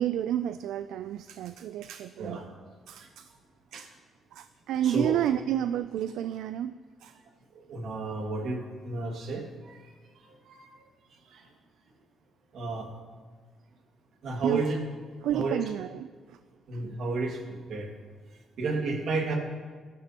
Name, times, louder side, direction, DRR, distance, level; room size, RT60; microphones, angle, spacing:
voice 1, 0.0-2.5 2.9-3.3 3.7-3.9 4.3-7.2 14.4-14.6 15.2-16.4 16.7-16.8, right 11 dB, 85° right, 12 dB, 0.3 m, -31 dB
voice 2, 4.8-5.2 7.5-10.8 11.3-11.5 12.5-12.9 14.2-14.8 15.3-15.6 16.7-17.9 18.6-19.4, right 3 dB, 65° right, 2 dB, 2.1 m, -32 dB
17.0 x 12.0 x 3.0 m, 1.5 s
cardioid pair, 90°, 0 cm